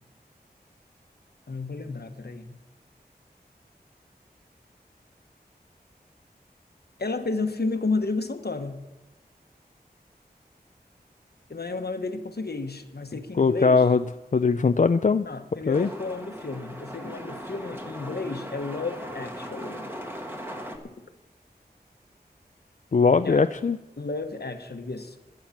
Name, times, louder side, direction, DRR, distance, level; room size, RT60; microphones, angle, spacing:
voice 1, 1.5-2.6 7.0-8.8 11.5-13.9 15.2-19.9 23.2-23.5 24.0-25.2, left 3 dB, 70° left, 7 dB, 1.2 m, -32 dB
voice 2, 13.4-14.0 14.3-15.2 15.7-15.9 22.9-23.8, left 4 dB, 50° left, 10 dB, 0.4 m, -20 dB
sound 1, 15.7-20.8, equal, 15° right, 1.5 m, -38 dB
11.5 x 9.6 x 7.2 m, 1.1 s
wide cardioid pair, 55°, 17 cm